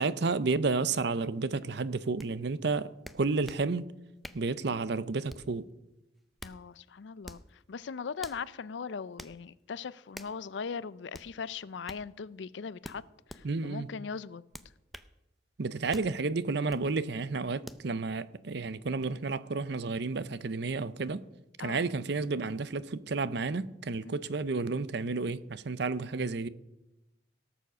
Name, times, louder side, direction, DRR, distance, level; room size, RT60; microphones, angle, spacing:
voice 1, 0.0-3.9 4.3-5.7 13.4-13.9 15.6-21.2 21.6-26.5, right 3 dB, 60° right, 0.6 m, -31 dB
sound 1, 2.2-2.3 3.0-3.7 4.2-4.5 5.3-5.6 6.2-6.6 7.2-7.5 8.2-8.4 9.2-9.4 10.1-10.4 11.1-11.3 11.8-12.0 12.8-13.4 14.5-15.1 15.9-16.1 16.7-16.9 17.6-17.9, equal, ahead, 0.5 m, -46 dB
voice 2, 6.4-13.0 13.3-14.4 21.6-21.9 24.0-24.2, left 5 dB, 70° left, 0.5 m, -40 dB
18.0 x 7.1 x 6.2 m
head